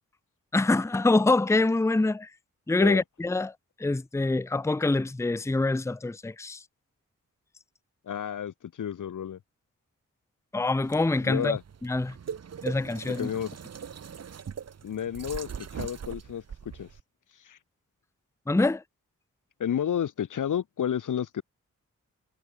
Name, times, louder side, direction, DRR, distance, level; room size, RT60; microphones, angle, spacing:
voice 1, 0.5-2.3 2.7-3.5 3.8-6.6 10.5-12.2 12.6-13.3 18.5-18.8, left 2 dB, 10° left, 0.6 m, -25 dB
voice 2, 8.1-9.4 11.2-11.6 13.1-13.5 14.8-16.9 17.4-17.6 19.6-21.4, left 9 dB, 65° left, 0.9 m, -31 dB
sound 1, 10.8-17.0, right 7 dB, 50° right, 0.9 m, -41 dB
cardioid pair, 50°, 33 cm